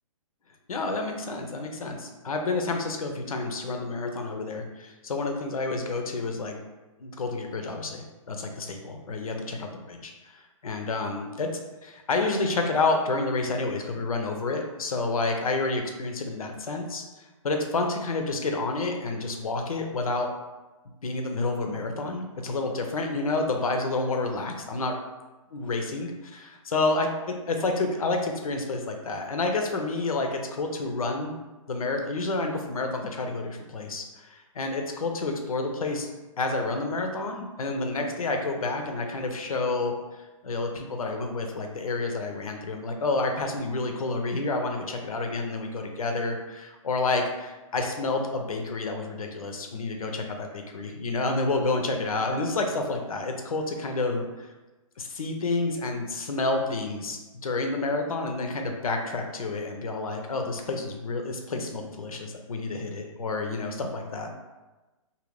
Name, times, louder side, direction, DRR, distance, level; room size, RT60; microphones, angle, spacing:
voice 1, 0.7-6.6 7.0-10.1 10.6-11.5 11.8-20.3 21.0-25.0 25.5-27.1 27.5-31.4 31.7-36.1 36.4-54.5 55.0-64.3, left 3 dB, 85° left, 3 dB, 0.6 m, -29 dB
2.7 x 2.6 x 3.1 m, 1.1 s
hypercardioid pair, 135°, 18 cm